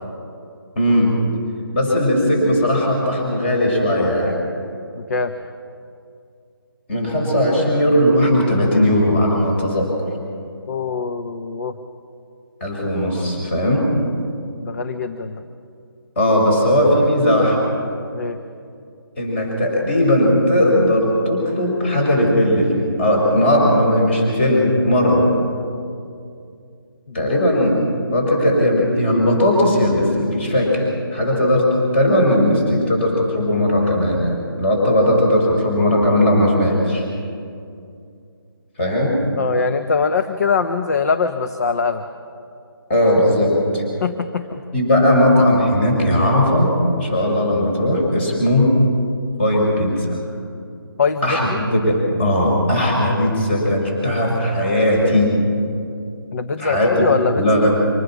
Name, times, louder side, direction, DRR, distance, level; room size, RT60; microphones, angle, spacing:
voice 1, 0.7-1.1 1.7-4.3 6.9-9.9 12.6-13.8 16.2-17.6 19.2-25.2 27.1-27.8 28.1-30.8 31.1-37.0 38.8-39.2 42.9-43.8 44.7-48.7 49.4-50.2 51.2-55.3 56.6-57.1 57.4-57.7, left 1 dB, 30° left, -1 dB, 6.5 m, -17 dB
voice 2, 4.9-5.3 10.7-11.8 14.6-15.4 18.1-18.4 27.1-27.3 39.4-42.0 44.0-44.6 51.0-51.6 56.3-57.7, left 5 dB, 45° left, 8 dB, 0.9 m, -22 dB
25.0 x 19.0 x 6.2 m, 2.4 s
figure-of-eight pair, 160°, 12 cm